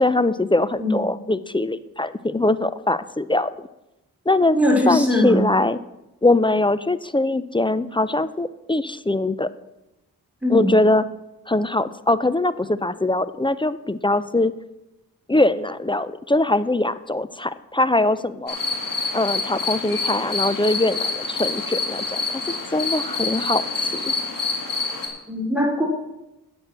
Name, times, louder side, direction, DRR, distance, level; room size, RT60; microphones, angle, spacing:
voice 1, 0.0-3.5 4.3-4.6 4.9-5.8 6.2-9.5 10.5-11.1 11.5-14.5 15.3-18.6 19.1-22.4 22.7-23.7 23.9-24.1, left 2 dB, 15° left, 15 dB, 0.5 m, -22 dB
voice 2, 4.5-5.4 10.4-10.7 25.3-25.9, left 1 dB, 5° right, -1 dB, 3.2 m, -20 dB
sound 1, 18.5-25.1, left 3 dB, 65° left, 2.1 m, -27 dB
8.6 x 6.1 x 7.7 m, 0.95 s
cardioid pair, 50°, 36 cm